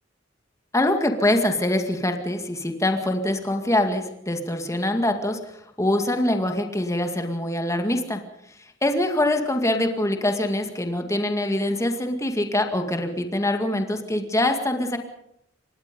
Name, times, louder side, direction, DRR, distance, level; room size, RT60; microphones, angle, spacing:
voice 1, 0.7-5.4 5.8-8.2 8.8-15.0, left 1 dB, 15° left, 5 dB, 2.1 m, -24 dB
25.5 x 19.5 x 5.3 m, 0.75 s
head